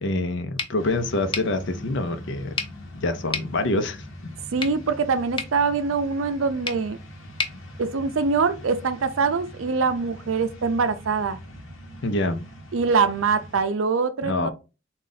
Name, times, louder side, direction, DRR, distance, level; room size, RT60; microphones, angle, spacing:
voice 1, 0.0-2.5 2.9-4.0 12.0-12.4 14.2-14.5, left 2 dB, 65° left, 0.7 m, -26 dB
sound 1, 0.6-8.6, left 4 dB, 25° left, 0.7 m, -36 dB
sound 2, 0.8-13.6, left 1 dB, 85° left, 1.0 m, -42 dB
voice 2, 4.5-7.0 7.8-11.4 12.7-14.5, right 5 dB, 80° right, 0.5 m, -23 dB
3.8 x 2.5 x 3.9 m
head